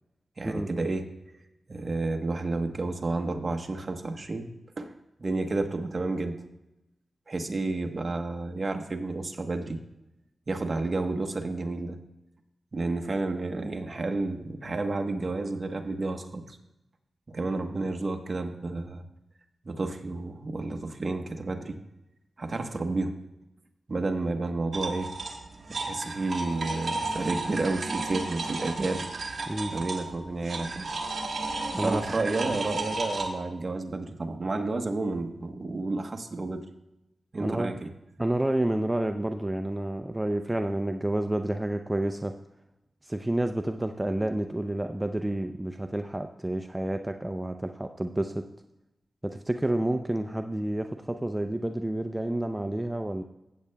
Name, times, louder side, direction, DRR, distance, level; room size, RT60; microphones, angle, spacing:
voice 1, 0.4-1.1 1.7-4.5 4.8-4.9 5.2-6.3 7.3-9.8 10.5-12.0 12.7-16.6 17.3-19.0 19.6-21.8 22.4-23.2 23.9-25.1 25.8-29.0 29.7-30.9 31.8-36.6 37.3-37.9, right 2 dB, 45° right, 4 dB, 1.1 m, -31 dB
sound 1, 24.7-33.3, right 3 dB, 60° right, 1.4 m, -33 dB
voice 2, 31.7-32.1 37.4-37.7 38.2-42.3 43.0-48.5 49.2-53.2, right 1 dB, 15° right, 5 dB, 0.5 m, -29 dB
15.0 x 8.6 x 2.3 m, 0.95 s
cardioid pair, 55°, 0 cm